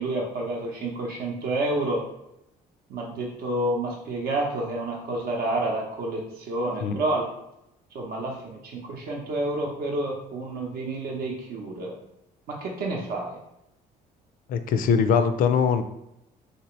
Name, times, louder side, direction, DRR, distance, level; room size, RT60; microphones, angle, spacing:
voice 1, 0.0-2.0 2.9-7.3 7.9-11.9 12.5-13.4, right 2 dB, 65° right, -1 dB, 0.7 m, -29 dB
voice 2, 14.5-15.8, left 6 dB, 55° left, 9 dB, 0.4 m, -21 dB
3.3 x 2.8 x 3.0 m, 0.84 s
cardioid pair, 110°, 17 cm